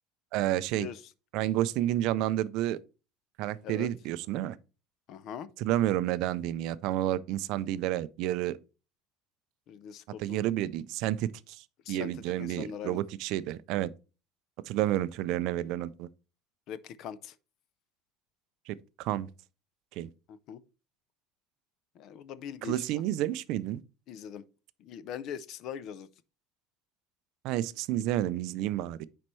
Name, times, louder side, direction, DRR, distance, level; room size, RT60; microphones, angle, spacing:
voice 1, 0.3-0.9 1.3-2.8 3.4-4.6 5.6-8.6 10.2-13.9 14.7-16.1 18.7-19.3 20.0-20.1 22.6-23.8 27.4-29.1, right 13 dB, 50° right, 0.4 m, -30 dB
voice 2, 5.1-5.5 9.7-10.4 11.9-13.0 16.7-17.3 20.3-20.6 22.0-22.8 24.1-24.4 24.8-26.1, left 8 dB, 40° left, 0.4 m, -41 dB
9.7 x 4.3 x 3.1 m
cardioid pair, 175°, 0 cm